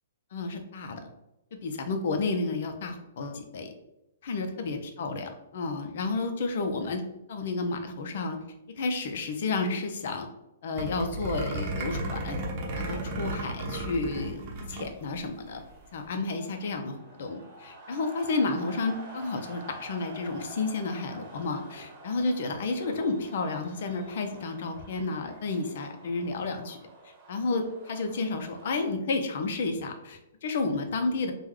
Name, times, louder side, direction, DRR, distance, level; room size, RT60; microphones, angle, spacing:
voice 1, 0.3-1.1 1.5-3.7 4.2-7.0 7.3-8.4 8.8-10.3 10.6-12.4 12.7-14.4 14.7-15.6 15.9-26.8 27.0-31.3, left 3 dB, 60° left, 6 dB, 0.6 m, -31 dB
sound 1, 10.7-14.9 15.2-15.3 15.5-15.8, right 2 dB, 35° right, 0.7 m, -34 dB
sound 2, 14.0-28.8, right 2 dB, 20° right, 1.0 m, -49 dB
3.5 x 2.2 x 3.1 m, 0.89 s
hypercardioid pair, 140°, 0 cm